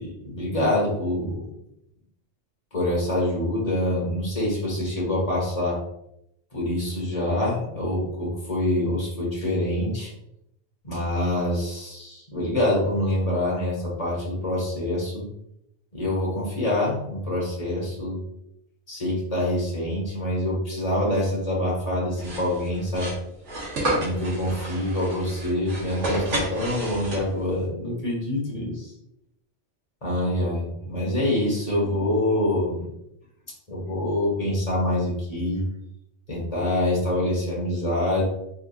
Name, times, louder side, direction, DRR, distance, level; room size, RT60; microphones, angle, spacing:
voice 1, 0.0-1.5 2.7-5.8 6.5-10.1 10.8-15.2 15.9-18.2 18.9-23.1 23.8-28.9 30.0-32.8 33.7-35.6 36.3-38.3, left 1 dB, 30° left, -4 dB, 1.6 m, -26 dB
sound 1, 22.2-27.5, right 1 dB, 75° right, 1.5 m, -31 dB
4.1 x 3.7 x 2.4 m, 0.79 s
omnidirectional pair, 1.2 m